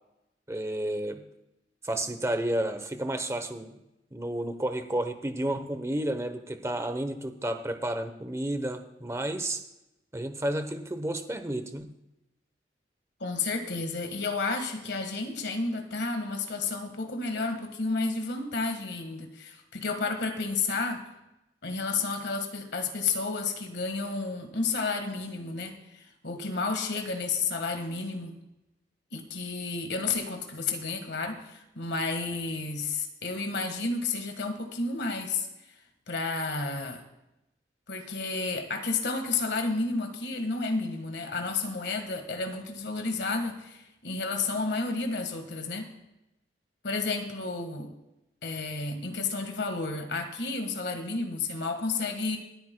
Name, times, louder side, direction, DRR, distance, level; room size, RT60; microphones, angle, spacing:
voice 1, 0.5-1.2 1.8-3.8 4.1-9.6 10.1-11.9, right 1 dB, 15° right, 8 dB, 0.8 m, -31 dB
voice 2, 13.2-21.1 21.6-28.4 29.1-35.5 36.1-37.0 37.9-46.0 46.8-47.9 48.4-52.4, left 3 dB, 70° left, 6 dB, 1.6 m, -31 dB
26.0 x 9.2 x 2.2 m, 0.90 s
head